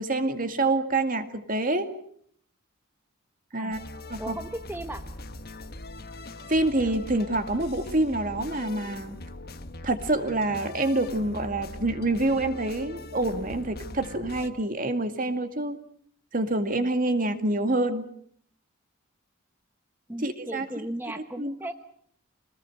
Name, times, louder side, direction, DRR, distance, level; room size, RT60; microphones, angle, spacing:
voice 1, 0.0-1.9 3.5-3.8 4.1-4.4 6.5-9.2 9.8-15.8 16.3-18.1 20.2-20.9 21.4-21.6, right 2 dB, 40° right, 8 dB, 2.2 m, -27 dB
sound 1, 3.7-14.5, left 2 dB, 45° left, 1.4 m, -41 dB
voice 2, 4.2-5.0 20.1-21.7, right 1 dB, 10° right, 6 dB, 1.0 m, -36 dB
26.5 x 19.5 x 7.9 m, 0.65 s
head